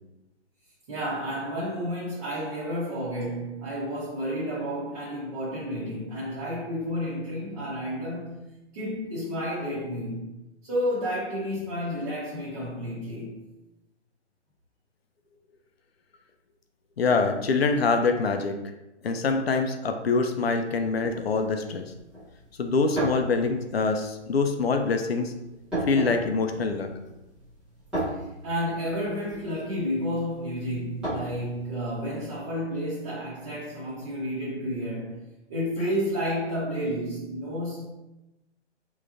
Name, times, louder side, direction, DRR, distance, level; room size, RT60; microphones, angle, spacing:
voice 1, 0.9-10.3 10.6-13.4 28.0-28.1 28.4-35.2 35.5-37.8, equal, 30° right, 0.9 m, -31 dB
voice 2, 17.0-18.5 19.0-21.9 22.6-25.3 25.9-26.9, left 4 dB, 60° left, 0.5 m, -25 dB
sound 1, 20.8-32.2, right 1 dB, 5° right, 0.5 m, -36 dB
3.5 x 3.0 x 2.5 m
figure-of-eight pair, 135°, 35 cm